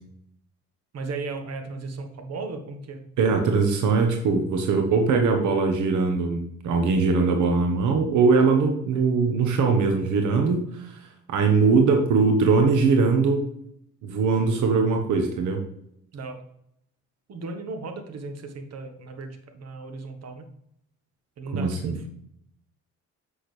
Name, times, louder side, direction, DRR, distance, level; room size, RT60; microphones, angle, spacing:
voice 1, 0.9-3.0 16.1-16.4 17.3-20.5 21.4-22.1, right 3 dB, 55° right, 5 dB, 1.3 m, -36 dB
voice 2, 3.2-11.0 11.3-13.4 14.0-15.6 21.5-22.0, right 4 dB, 80° right, 4 dB, 1.2 m, -21 dB
7.7 x 6.4 x 3.3 m, 0.73 s
cardioid pair, 90°, 30 cm